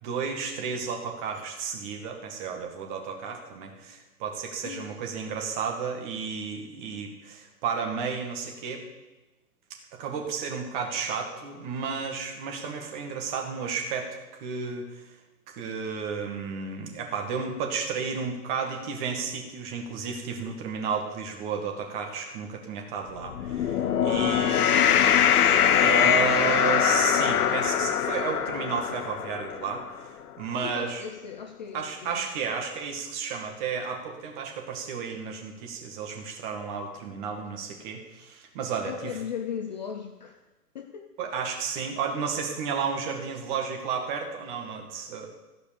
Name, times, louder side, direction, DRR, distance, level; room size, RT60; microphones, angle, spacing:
voice 1, 0.0-8.8 10.0-14.1 14.4-15.0 15.5-24.6 25.8-29.8 30.4-31.0 31.7-39.2 41.2-45.3, right 6 dB, 30° right, 2 dB, 1.9 m, -32 dB
voice 2, 4.6-5.0 24.4-25.1 30.6-32.2 38.8-40.4 40.7-41.1, left 8 dB, 30° left, 6 dB, 0.5 m, -37 dB
sound 1, 23.3-29.8, left 9 dB, 70° left, 0.8 m, -23 dB
14.5 x 5.2 x 7.0 m, 1.1 s
hypercardioid pair, 150°, 47 cm